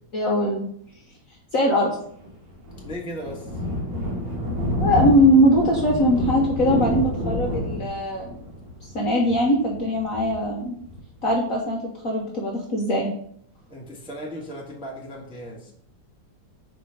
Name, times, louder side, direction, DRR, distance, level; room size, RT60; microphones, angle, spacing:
voice 1, 0.1-0.6 1.5-1.9 4.8-8.4 8.9-10.8 11.2-11.8 12.0-13.1, equal, 50° left, -2 dB, 1.1 m, -21 dB
Thunder, 2.2-11.3, equal, 60° right, 2.2 m, -29 dB
voice 2, 2.8-3.6 13.7-15.7, equal, 5° right, -3 dB, 0.9 m, -36 dB
4.9 x 3.9 x 5.7 m, 0.65 s
omnidirectional pair, 2.3 m